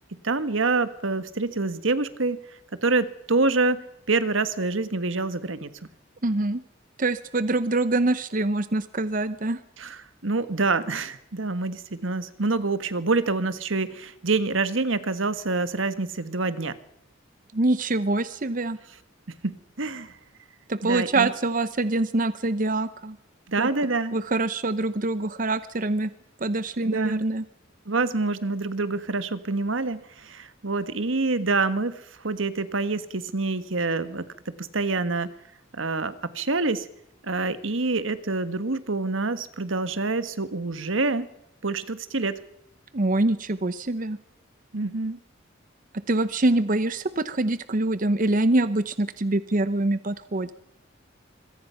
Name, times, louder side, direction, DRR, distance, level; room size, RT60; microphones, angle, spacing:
voice 1, 0.2-2.4 2.7-5.7 9.8-16.8 19.4-20.1 20.8-21.3 23.5-24.1 26.8-27.2 27.9-31.9 32.2-35.3 35.7-36.9 37.2-41.3 41.6-42.4 44.7-45.2, right 3 dB, 80° right, 13 dB, 1.6 m, -26 dB
voice 2, 6.2-6.6 7.0-9.6 17.5-18.8 20.7-23.2 23.6-23.7 24.1-26.1 26.4-27.4 42.9-44.2 46.1-50.5, right 2 dB, 40° right, 14 dB, 0.8 m, -25 dB
25.5 x 22.5 x 5.7 m, 0.82 s
head